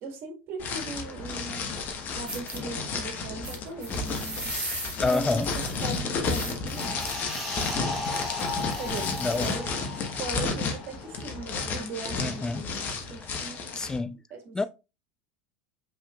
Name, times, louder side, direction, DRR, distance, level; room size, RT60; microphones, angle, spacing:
voice 1, 0.0-1.7 2.1-4.5 5.0-5.5 5.8-7.0 8.8-9.8 10.2-13.8 14.3-14.6, right 3 dB, 50° right, 1.7 m, -39 dB
sound 1, 0.6-14.0, left 4 dB, 40° left, 1.1 m, -32 dB
sound 2, 1.8-1.9 2.3-2.6 3.4-9.6, right 2 dB, 20° right, 2.5 m, -40 dB
voice 2, 5.0-5.5 9.2-9.5 12.2-12.7 13.8-14.2 14.5-14.7, left 3 dB, 15° left, 0.4 m, -27 dB
sound 3, 6.7-11.8 12.1-12.3, left 2 dB, 5° right, 2.4 m, -36 dB
5.2 x 3.7 x 2.4 m
hypercardioid pair, 95°, 5 cm